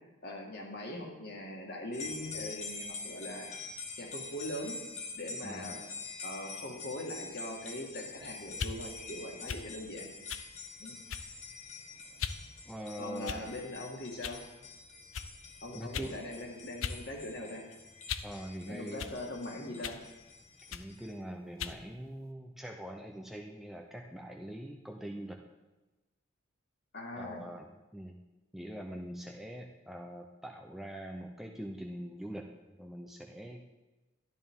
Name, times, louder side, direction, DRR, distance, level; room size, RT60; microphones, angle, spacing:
voice 1, 0.2-3.5 4.0-4.8 5.2-5.8 6.2-10.1 10.8-11.0 13.0-14.4 15.6-17.6 18.7-20.0 26.9-27.5, left 1 dB, 50° left, 0 dB, 1.9 m, -41 dB
sound 1, 1.9-21.2, left 3 dB, 35° left, 1.2 m, -46 dB
voice 2, 5.4-5.7 12.7-13.4 15.7-16.2 18.2-19.1 20.7-25.4 27.2-28.2 28.5-33.6, equal, ahead, 1 dB, 0.5 m, -43 dB
sound 2, 8.5-8.8 9.5-9.7 10.3-10.5 11.1-11.4 12.2-12.4 13.2-13.6 14.2-14.4 15.1-15.3 15.9-16.1 16.8-17.0 17.4-18.4 19.0-19.2 19.8-20.0 20.7-20.9 21.6-21.8, left 6 dB, 75° left, 0.5 m, -38 dB
13.0 x 10.5 x 3.7 m, 1.1 s
head